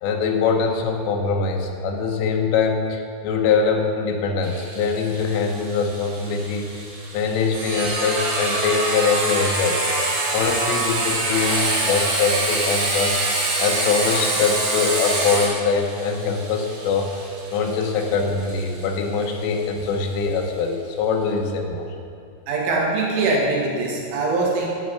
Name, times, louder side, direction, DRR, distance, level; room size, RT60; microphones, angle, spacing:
voice 1, 0.0-6.7 7.1-9.8 10.3-13.2 13.6-17.1 17.5-21.9, left 5 dB, 85° left, 2 dB, 3.6 m, -23 dB
Sawing, 4.4-19.9, right 2 dB, 45° right, 3.6 m, -25 dB
voice 2, 22.5-24.7, right 3 dB, 75° right, -3 dB, 4.3 m, -22 dB
12.5 x 6.6 x 7.9 m, 2.5 s
omnidirectional pair, 5.7 m